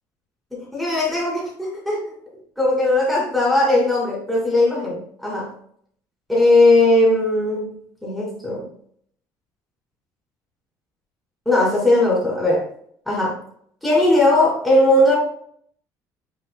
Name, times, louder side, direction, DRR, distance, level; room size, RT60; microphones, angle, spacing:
voice 1, 0.6-2.1 2.6-5.5 6.3-7.7 8.0-8.7 11.4-12.7 13.1-13.4 13.8-15.2, left 2 dB, ahead, -6 dB, 2.8 m, -18 dB
8.4 x 5.2 x 2.3 m, 0.63 s
cardioid pair, 165°, 8 cm